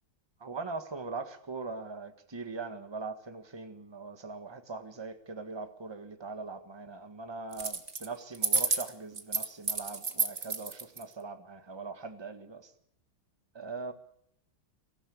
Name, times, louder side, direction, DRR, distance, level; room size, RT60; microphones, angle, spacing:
voice 1, 0.4-12.7 13.5-13.9, right 4 dB, 15° right, 8 dB, 1.4 m, -41 dB
sound 1, 7.5-8.1 8.3-11.0, right 4 dB, 30° right, 1.7 m, -30 dB
25.0 x 16.0 x 8.6 m, 0.71 s
omnidirectional pair, 2.2 m